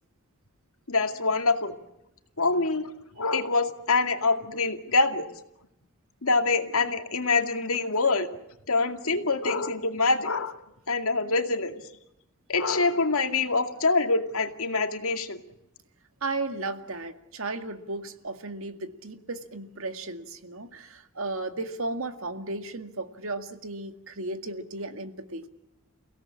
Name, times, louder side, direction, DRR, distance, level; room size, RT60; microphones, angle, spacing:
voice 1, 0.9-1.8 2.4-2.9 3.2-5.3 6.2-8.3 8.7-10.5 10.9-11.7 12.5-15.4, left 3 dB, 80° left, 6 dB, 2.3 m, -25 dB
voice 2, 16.2-25.4, right 2 dB, 70° right, 8 dB, 2.1 m, -35 dB
30.0 x 17.0 x 8.7 m, 0.88 s
head